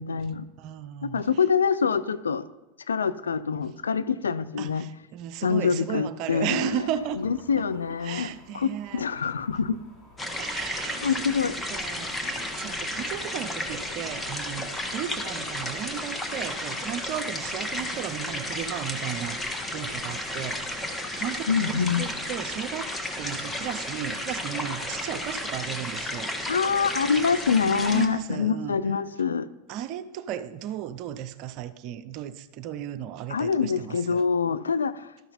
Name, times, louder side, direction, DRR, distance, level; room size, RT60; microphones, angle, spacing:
voice 1, 0.0-0.4 1.0-2.4 2.9-4.8 5.4-6.7 7.2-9.8 11.0-11.6 21.5-22.1 26.5-29.5 33.3-35.1, left 6 dB, 85° left, 13 dB, 0.4 m, -25 dB
voice 2, 0.6-1.3 4.6-7.2 8.0-9.0 10.4-11.4 11.7-19.4 19.7-26.3 27.8-28.8 29.7-34.2, right 10 dB, 50° right, 11 dB, 0.5 m, -35 dB
sound 1, 6.5-15.7, left 3 dB, 35° left, 2.8 m, -54 dB
sound 2, 10.2-28.1, left 1 dB, 10° left, 1.3 m, -33 dB
12.5 x 5.8 x 4.2 m, 1.0 s
hypercardioid pair, 90°, 0 cm